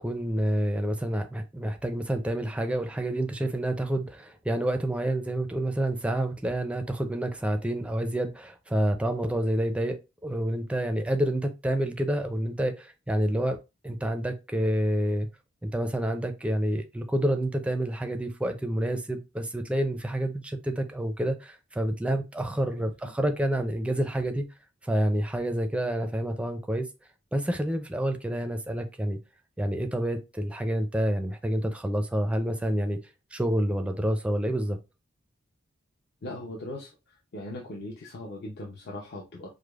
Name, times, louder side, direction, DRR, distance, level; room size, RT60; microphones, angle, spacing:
voice 1, 0.0-13.6 13.8-15.3 15.6-24.5 24.8-26.9 27.3-29.2 29.6-33.0 33.3-34.8, right 1 dB, 5° right, 0.4 m, -28 dB
voice 2, 36.2-39.5, left 1 dB, 55° left, 0.6 m, -39 dB
4.9 x 2.0 x 2.3 m
head